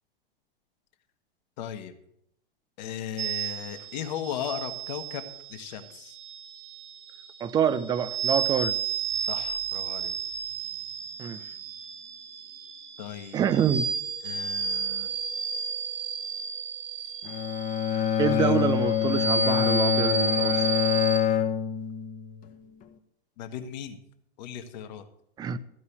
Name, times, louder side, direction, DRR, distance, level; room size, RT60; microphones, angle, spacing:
voice 1, 1.6-1.9 2.8-5.2 5.5-6.2 9.2-10.1 13.0-13.4 14.2-15.1 18.2-18.6 23.4-24.0 24.4-25.0, left 9 dB, 45° left, 1.4 m, -37 dB
sound 1, 3.2-21.2, right 6 dB, 35° right, 2.1 m, -32 dB
voice 2, 7.4-8.8 11.2-11.5 13.3-13.9 17.9-20.7 25.4-25.6, right 8 dB, 15° right, 0.5 m, -26 dB
Bowed string instrument, 17.2-22.5, left 9 dB, 25° left, 1.1 m, -25 dB
14.0 x 5.5 x 8.0 m
figure-of-eight pair, 100°, 30 cm